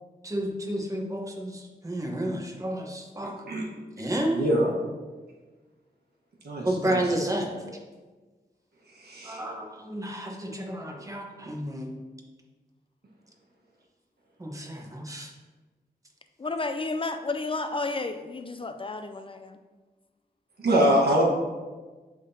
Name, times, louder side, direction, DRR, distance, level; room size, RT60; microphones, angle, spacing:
voice 1, 0.2-3.3 4.0-4.4 6.6-7.5 9.2-11.9 14.4-15.3, right 1 dB, 20° right, 1 dB, 1.1 m, -31 dB
voice 2, 4.3-4.8 6.4-7.0 8.9-9.4 20.6-21.2, equal, 75° right, -3 dB, 1.3 m, -24 dB
voice 3, 16.4-19.6, left 3 dB, 35° left, 8 dB, 0.4 m, -32 dB
11.0 x 3.7 x 2.8 m, 1.3 s
wide cardioid pair, 75°, 17 cm